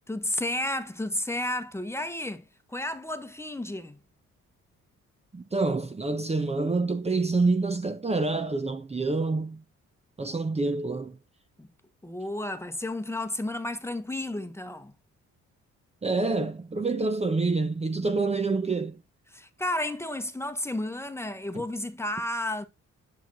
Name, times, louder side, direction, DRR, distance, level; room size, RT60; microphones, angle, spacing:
voice 1, 0.1-4.0 10.3-10.4 11.6-11.7 12.0-14.9 19.3-22.7, left 1 dB, 10° left, 1.3 m, -32 dB
voice 2, 5.3-9.6 10.2-11.2 16.0-19.0 21.5-21.6, right 3 dB, 20° right, 1.0 m, -27 dB
10.5 x 6.1 x 4.2 m
cardioid pair, 90°, 30 cm